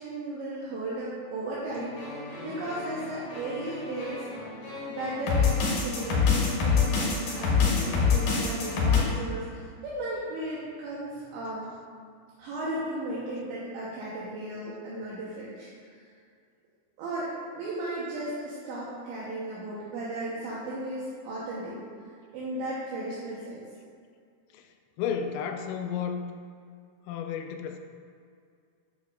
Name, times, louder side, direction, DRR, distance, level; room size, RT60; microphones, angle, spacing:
voice 1, 0.0-1.9 2.4-4.1 4.9-7.8 8.1-11.7 12.4-15.7 17.0-21.8 22.3-23.6, right 1 dB, 75° right, -7 dB, 2.8 m, -35 dB
sound 1, 1.7-9.0, left 5 dB, 70° left, 2.2 m, -26 dB
voice 2, 25.0-26.2 27.1-27.8, left 7 dB, 85° left, 5 dB, 2.8 m, -32 dB
9.4 x 7.1 x 2.4 m, 2.2 s
omnidirectional pair, 6.0 m